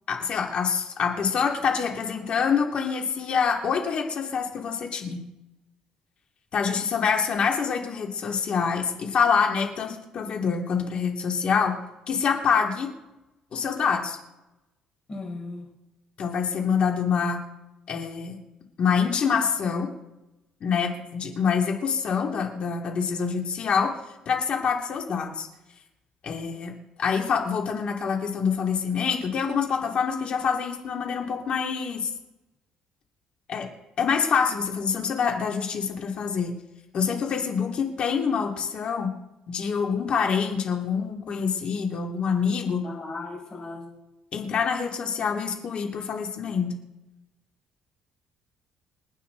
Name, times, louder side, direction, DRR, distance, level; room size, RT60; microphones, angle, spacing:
voice 1, 0.1-5.2 6.5-11.8 12.1-12.9 13.5-14.2 16.2-17.4 17.9-18.4 18.8-19.9 20.6-23.9 24.3-25.5 26.2-32.1 33.5-33.7 34.0-36.5 36.9-39.1 39.5-42.9 44.3-46.7, left 6 dB, 55° left, 1 dB, 2.9 m, -26 dB
voice 2, 15.1-15.7 42.8-44.0, left 3 dB, 35° left, -1 dB, 6.0 m, -37 dB
28.0 x 9.4 x 4.1 m, 0.97 s
cardioid pair, 110°, 2 cm